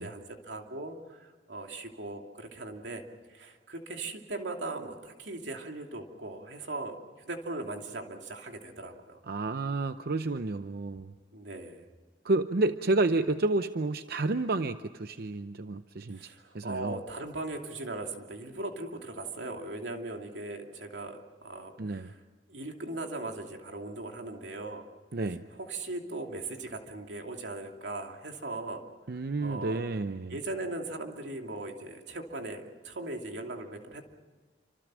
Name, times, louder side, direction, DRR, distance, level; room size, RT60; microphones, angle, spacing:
voice 1, 0.0-3.0 3.3-9.2 11.3-11.9 16.1-22.2 22.5-24.9 25.6-29.8 30.3-34.1, right 2 dB, 90° right, 3 dB, 2.6 m, -39 dB
voice 2, 9.3-11.1 12.2-17.0 21.8-22.1 25.1-25.4 29.1-30.4, right 2 dB, 60° right, 10 dB, 0.7 m, -30 dB
28.5 x 25.5 x 6.3 m, 1.4 s
head